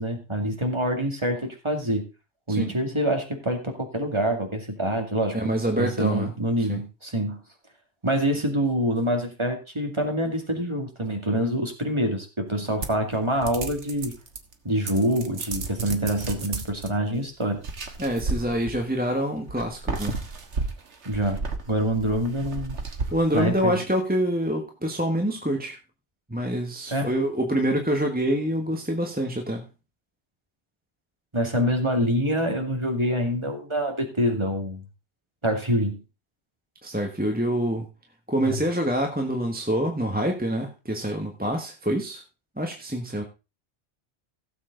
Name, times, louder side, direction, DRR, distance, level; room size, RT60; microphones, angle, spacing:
voice 1, 0.0-2.1 2.5-5.5 5.8-7.4 8.0-14.1 14.6-17.6 21.1-21.4 21.7-22.8 23.3-23.8 26.9-27.1 31.3-34.8 35.4-36.0 38.4-38.6, equal, 25° right, 4 dB, 2.3 m, -26 dB
voice 2, 5.3-6.3 6.7-6.8 18.0-20.2 23.1-25.8 26.3-29.6 36.8-37.9 38.3-42.2 42.6-43.2, right 1 dB, 10° right, 2 dB, 1.3 m, -26 dB
sound 1, 12.8-14.5 14.9-16.9 17.6-19.0 19.5-23.8, right 4 dB, 80° right, 1.7 m, -33 dB
16.0 x 7.4 x 3.8 m, 0.29 s
omnidirectional pair, 1.2 m